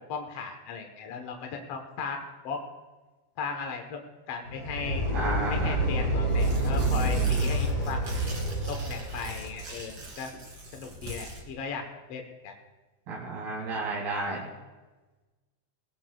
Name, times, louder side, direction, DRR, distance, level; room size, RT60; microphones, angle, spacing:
voice 1, 0.1-2.6 3.4-4.0 4.3-5.0 5.5-8.0 8.7-10.3 10.7-12.5 13.7-13.8, left 5 dB, 80° left, 3 dB, 1.4 m, -37 dB
sound 1, 4.4-9.6, right 1 dB, 20° left, 4.2 m, -28 dB
voice 2, 5.1-5.8 13.1-14.5, right 3 dB, 65° right, -4 dB, 4.0 m, -32 dB
Tearing, 6.3-11.4, right 1 dB, 35° right, 2.6 m, -41 dB
21.5 x 17.5 x 2.3 m, 1.2 s
omnidirectional pair, 4.7 m